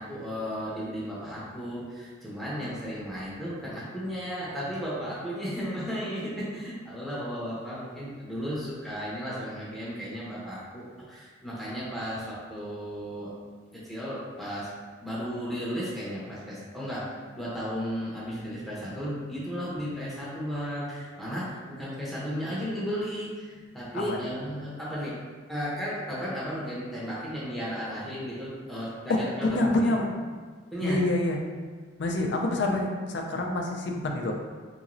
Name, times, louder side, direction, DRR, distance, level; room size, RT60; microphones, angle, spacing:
voice 1, 0.0-13.3 13.7-14.7 15.0-25.2 25.5-29.7 30.7-31.0, equal, ahead, -8 dB, 0.7 m, -34 dB
voice 2, 23.9-24.3 28.9-30.1 30.8-31.4 32.0-34.3, left 2 dB, 60° left, 2 dB, 0.5 m, -27 dB
3.9 x 3.0 x 2.6 m, 1.5 s
head